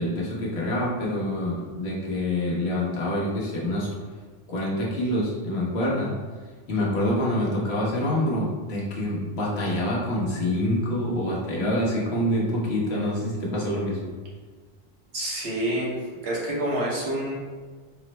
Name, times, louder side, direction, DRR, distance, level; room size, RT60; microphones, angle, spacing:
voice 1, 0.0-3.9 4.5-6.1 6.7-14.1, left 1 dB, 85° left, -4 dB, 1.2 m, -26 dB
voice 2, 15.1-16.0 16.2-17.3, right 1 dB, 85° right, -4 dB, 1.3 m, -27 dB
3.7 x 2.0 x 4.3 m, 1.5 s
omnidirectional pair, 1.0 m